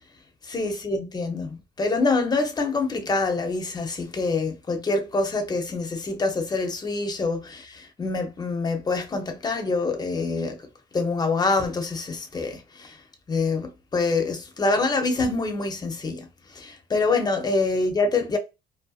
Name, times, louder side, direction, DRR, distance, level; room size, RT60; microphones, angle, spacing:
voice 1, 0.4-10.7 10.9-13.0 13.3-16.3 16.5-18.4, left 3 dB, 25° left, 0.7 m, -26 dB
2.6 x 2.2 x 2.3 m
cardioid pair, 110°, 17 cm